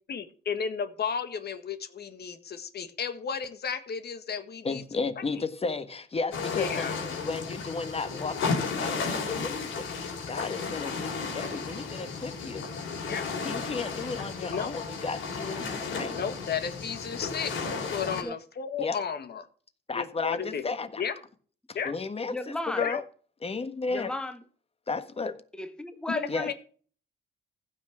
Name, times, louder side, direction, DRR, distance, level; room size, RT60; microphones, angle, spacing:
voice 1, 0.1-4.8 6.5-7.0 13.1-13.2 14.5-14.7 16.1-17.7 17.9-19.5 19.9-21.1 21.7-21.9 22.8-23.0 26.1-26.5, left 7 dB, 55° left, 1.6 m, -33 dB
voice 2, 4.6-12.7 13.4-16.1 18.8-19.0 19.9-21.0 21.7-23.0 23.4-24.1 24.9-25.3 26.3-26.5, left 4 dB, 30° left, 1.6 m, -34 dB
sound 1, 6.3-18.2, left 4 dB, 75° left, 4.5 m, -34 dB
voice 3, 22.3-22.9 23.9-24.4 25.6-26.5, left 2 dB, 5° left, 1.3 m, -34 dB
15.5 x 6.2 x 6.0 m
cardioid pair, 90°, 20 cm